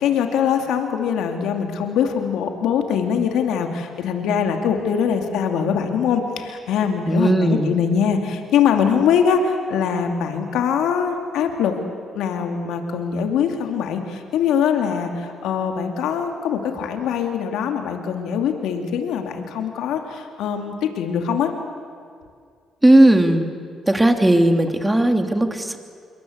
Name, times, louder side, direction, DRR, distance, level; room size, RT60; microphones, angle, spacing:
voice 1, 0.0-11.8 12.1-21.5, left 7 dB, 80° left, 4 dB, 2.7 m, -22 dB
voice 2, 7.1-7.7 22.8-23.5 23.9-25.8, right 1 dB, 10° right, 5 dB, 3.1 m, -16 dB
26.5 x 23.5 x 8.1 m, 2.2 s
supercardioid pair, 60°, 0 cm